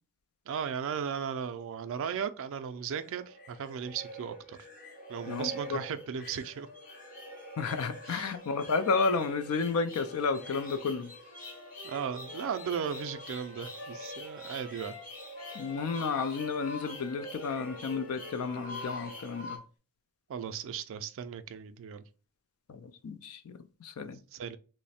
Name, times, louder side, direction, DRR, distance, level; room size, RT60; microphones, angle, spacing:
voice 1, 0.5-4.6 5.1-6.7 8.1-8.3 11.8-14.9 20.3-22.0 24.3-24.6, right 7 dB, 60° right, 0.3 m, -36 dB
sound 1, 2.6-19.6, left 1 dB, 40° left, 0.8 m, -45 dB
voice 2, 5.3-5.8 7.6-11.1 15.5-19.6 22.7-24.2, left 4 dB, 70° left, 0.4 m, -32 dB
Wind instrument woodwind instrument, 11.3-15.1 15.3-19.4, left 1 dB, 90° left, 1.2 m, -47 dB
3.1 x 2.0 x 4.1 m
head